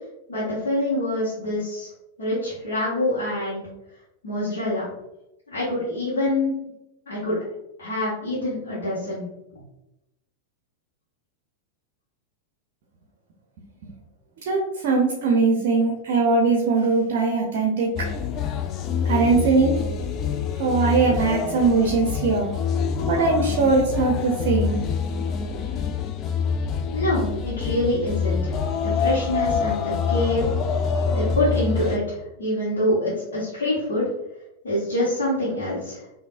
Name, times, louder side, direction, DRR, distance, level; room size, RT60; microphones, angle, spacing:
voice 1, 0.3-1.9 2.2-3.6 4.2-4.8 5.5-6.5 7.1-7.4 7.8-9.3 26.9-28.5 28.8-30.4 31.1-34.1 34.6-36.0, left 1 dB, 60° left, -10 dB, 1.3 m, -25 dB
voice 2, 14.4-17.9 19.1-19.8 20.6-22.5 23.1-24.8, right 4 dB, 50° right, 1 dB, 0.6 m, -21 dB
sound 1, 18.0-32.0, left 6 dB, 35° left, 0.3 m, -26 dB
5.3 x 2.6 x 2.4 m, 0.92 s
figure-of-eight pair, 90°, 0 cm